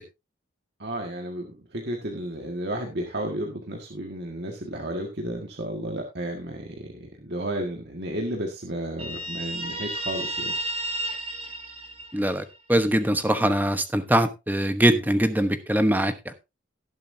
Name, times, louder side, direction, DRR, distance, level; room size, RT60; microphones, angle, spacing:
voice 1, 0.8-10.5, right 1 dB, 55° right, 1.8 m, -32 dB
Guitar, 9.0-12.6, right 1 dB, 30° right, 4.2 m, -32 dB
voice 2, 12.1-16.3, right 1 dB, 10° right, 1.0 m, -22 dB
18.0 x 7.7 x 2.7 m
head